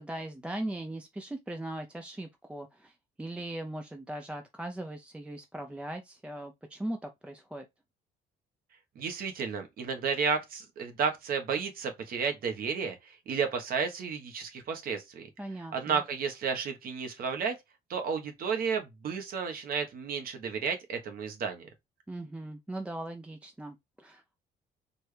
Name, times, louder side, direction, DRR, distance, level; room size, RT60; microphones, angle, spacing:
voice 1, 0.0-7.7 15.4-16.0 22.1-24.4, right 1 dB, 5° right, 0.5 m, -39 dB
voice 2, 8.9-15.3 15.7-17.5 17.9-21.7, right 6 dB, 60° right, 1.2 m, -32 dB
4.4 x 3.3 x 3.2 m
cardioid pair, 110°, 17 cm